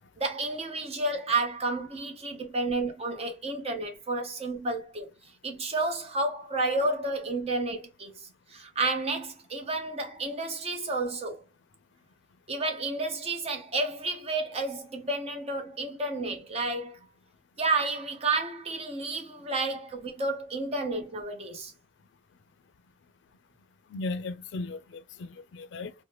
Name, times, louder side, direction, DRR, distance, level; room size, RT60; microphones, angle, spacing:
voice 1, 0.2-5.1 5.4-11.4 12.5-17.0 17.6-21.7, right 2 dB, 35° right, 0.7 m, -31 dB
voice 2, 23.9-25.9, left 3 dB, 80° left, 0.4 m, -36 dB
3.1 x 2.1 x 2.9 m
head